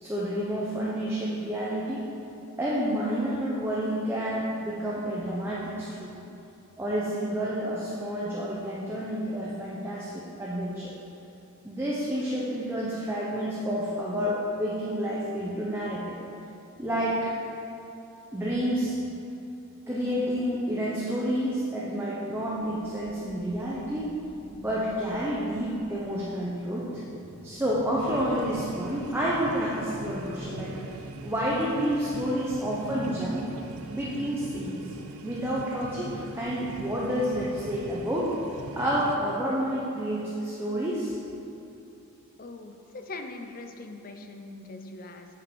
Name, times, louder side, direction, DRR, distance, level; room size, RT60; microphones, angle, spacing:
voice 1, 0.0-2.0 2.6-6.2 6.8-10.9 11.6-16.2 16.8-17.3 18.3-18.9 19.9-24.2 24.5-27.0 27.4-30.7 31.2-33.5 33.9-34.9 35.2-38.3 38.8-41.2, equal, 10° right, -6 dB, 0.7 m, -29 dB
sound 1, 22.3-30.3, equal, 65° left, 1.4 m, -50 dB
sound 2, 28.0-39.2, right 2 dB, 75° right, 0.5 m, -41 dB
voice 2, 42.4-45.3, left 2 dB, 40° left, 5 dB, 0.5 m, -41 dB
8.8 x 5.1 x 4.6 m, 2.8 s
head